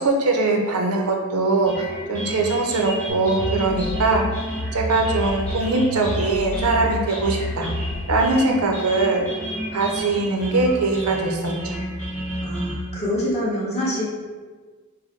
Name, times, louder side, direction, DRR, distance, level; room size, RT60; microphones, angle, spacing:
voice 1, 0.0-4.2 4.7-7.7 8.1-9.3 9.7-11.8, right 3 dB, 80° right, 2 dB, 0.6 m, -21 dB
sound 1, 1.7-12.7, equal, 5° left, 1.2 m, -32 dB
sound 2, 3.1-8.5, left 2 dB, 70° left, 0.4 m, -30 dB
voice 2, 12.4-14.0, left 1 dB, 30° left, -6 dB, 1.1 m, -25 dB
4.7 x 2.1 x 4.4 m, 1.4 s
head